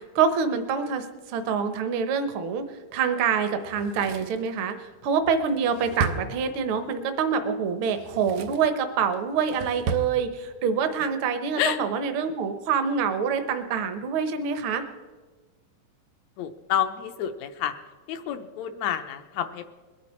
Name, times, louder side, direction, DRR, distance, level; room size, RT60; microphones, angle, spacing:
voice 1, 0.0-2.7 2.9-14.8, right 6 dB, 60° right, 8 dB, 1.5 m, -26 dB
Drawer open or close, 3.6-6.9 7.8-8.7 9.1-10.1 10.4-10.5, right 4 dB, 85° right, 2.1 m, -35 dB
voice 2, 16.4-17.7 18.1-19.7, left 10 dB, 75° left, 8 dB, 1.9 m, -29 dB
21.5 x 10.5 x 4.4 m, 1.3 s
omnidirectional pair, 3.4 m